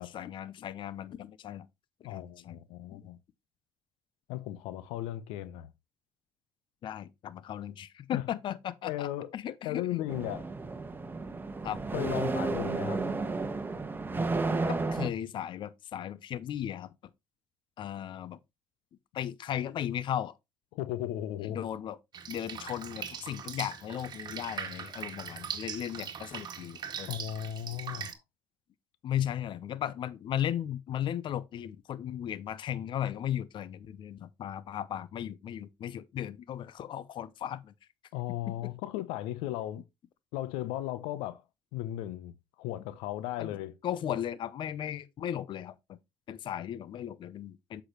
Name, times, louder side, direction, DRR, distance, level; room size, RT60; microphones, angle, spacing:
voice 1, 0.0-1.7 2.0-2.6 2.9-3.1 6.8-10.0 11.6-11.8 14.7-16.9 17.8-18.4 19.1-20.4 21.5-22.0 22.3-27.1 29.0-37.7 38.5-38.6 43.4-43.6 43.8-46.0 46.3-47.8, left 10 dB, 55° left, 0.8 m, -36 dB
voice 2, 2.0-3.2 4.3-5.7 8.1-8.2 8.8-9.3 9.6-10.5 11.9-13.0 20.7-21.6 27.1-28.2 38.1-39.9 40.3-41.4 41.7-43.7, left 13 dB, 85° left, 0.7 m, -36 dB
sound 1, 10.1-15.1, right 3 dB, 20° right, 1.3 m, -32 dB
Drip, 22.1-28.1, right 7 dB, 45° right, 1.7 m, -41 dB
7.9 x 6.3 x 3.1 m
supercardioid pair, 80°, 10 cm